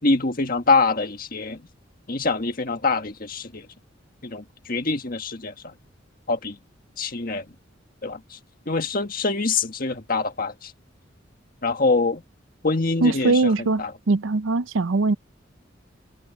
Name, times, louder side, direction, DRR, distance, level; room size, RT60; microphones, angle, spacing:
voice 1, 0.0-1.6 2.1-3.6 4.2-5.7 6.3-6.6 7.0-7.4 8.0-8.4 8.7-10.7 11.6-12.2 12.6-13.9, left 3 dB, 45° left, 1.7 m, -24 dB
voice 2, 13.0-15.2, right 3 dB, 85° right, 0.6 m, -21 dB
head